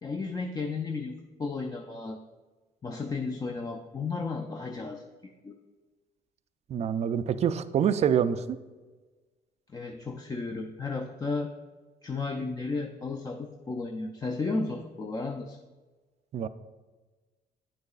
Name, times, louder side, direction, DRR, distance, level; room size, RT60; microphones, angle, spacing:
voice 1, 0.0-2.2 2.8-5.5 9.7-11.5 12.0-15.6, left 3 dB, 20° left, 3 dB, 0.4 m, -34 dB
voice 2, 6.7-8.6 16.3-16.5, right 8 dB, 40° right, 13 dB, 0.4 m, -26 dB
9.0 x 6.6 x 2.4 m, 1.3 s
cardioid pair, 110°, 17 cm